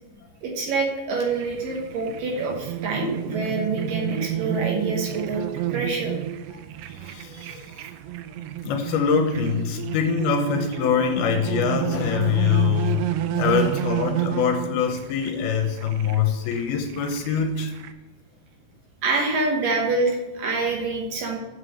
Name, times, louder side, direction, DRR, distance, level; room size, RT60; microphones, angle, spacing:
voice 1, 0.4-5.4 5.7-6.2 7.3-7.5 19.0-21.4, right 3 dB, 65° right, 1 dB, 2.5 m, -26 dB
sound 1, 1.3-17.9, right 12 dB, 85° right, 2.6 m, -30 dB
voice 2, 6.5-7.9 8.6-17.7, left 7 dB, 75° left, 5 dB, 2.5 m, -24 dB
7.4 x 6.6 x 6.4 m, 1.2 s
omnidirectional pair, 4.8 m